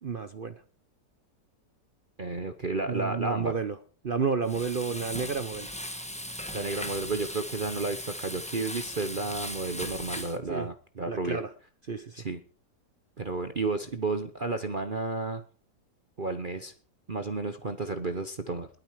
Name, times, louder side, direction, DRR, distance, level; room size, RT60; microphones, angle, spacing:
voice 1, 0.0-0.6 2.9-3.8 4.0-5.7 10.5-10.7 11.1-11.5 11.9-12.2, right 5 dB, 55° right, 11 dB, 0.6 m, -31 dB
voice 2, 2.2-3.5 6.5-11.4 12.2-12.4 13.2-15.4 16.2-16.7 17.1-18.7, right 3 dB, 35° right, 9 dB, 0.9 m, -32 dB
Frying (food), 4.4-10.4, left 1 dB, 5° left, 1.2 m, -38 dB
20.5 x 9.2 x 4.7 m, 0.39 s
omnidirectional pair, 1.9 m